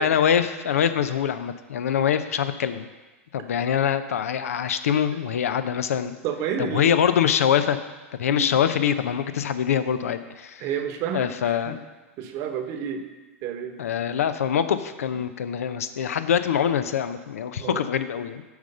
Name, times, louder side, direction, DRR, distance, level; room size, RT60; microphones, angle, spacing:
voice 1, 0.0-2.9 3.3-6.1 6.6-7.8 8.2-10.7 11.1-11.8 13.8-18.4, left 8 dB, 80° left, 11 dB, 0.5 m, -24 dB
voice 2, 6.2-6.9 8.3-8.4 10.6-11.8 12.2-13.0 13.4-13.8 17.6-17.8, right 7 dB, 45° right, 6 dB, 1.0 m, -30 dB
8.1 x 5.0 x 5.3 m, 1.2 s
hypercardioid pair, 110°, 8 cm